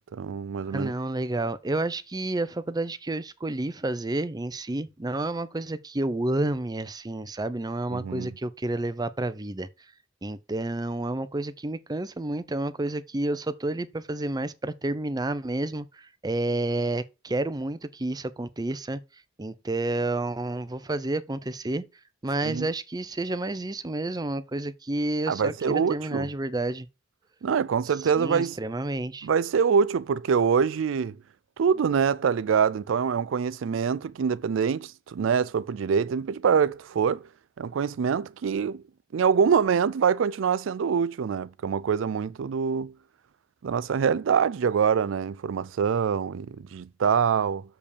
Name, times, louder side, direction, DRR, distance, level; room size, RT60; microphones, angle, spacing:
voice 1, 0.1-0.9 7.9-8.3 22.4-22.7 25.3-26.3 27.4-28.6 29.2-31.2 31.6-37.2 37.6-38.8 39.1-42.9 43.6-47.6, right 6 dB, 75° right, 0.4 m, -25 dB
voice 2, 0.7-9.7 10.2-15.9 16.2-19.0 19.4-21.8 22.2-26.9 28.2-29.3, right 2 dB, 20° right, 0.6 m, -30 dB
6.9 x 5.3 x 6.6 m
head